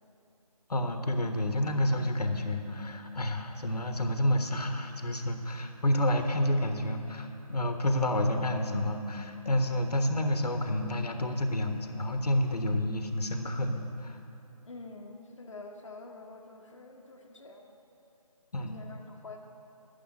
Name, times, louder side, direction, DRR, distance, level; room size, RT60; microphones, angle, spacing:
voice 1, 0.7-14.2 18.5-18.8, left 1 dB, 80° left, 5 dB, 1.3 m, -29 dB
voice 2, 14.6-17.8 18.6-19.4, left 3 dB, 50° left, 0 dB, 1.0 m, -47 dB
12.0 x 7.2 x 8.4 m, 2.8 s
figure-of-eight pair, 170°, 20 cm